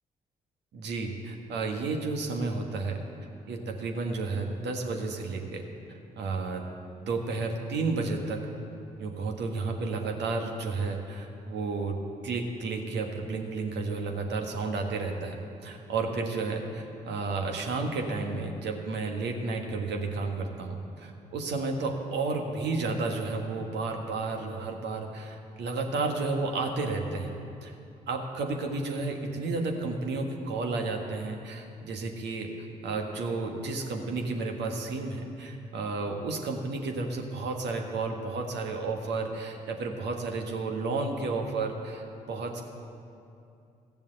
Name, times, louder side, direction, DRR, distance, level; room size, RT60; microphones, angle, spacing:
voice 1, 0.7-3.0 3.5-5.7 6.2-6.6 7.0-8.4 9.0-12.0 12.2-27.3 27.6-27.7 28.1-32.5 32.8-42.6, right 3 dB, 60° right, 3 dB, 1.5 m, -32 dB
14.5 x 7.1 x 7.8 m, 2.6 s
figure-of-eight pair, 40°, 20 cm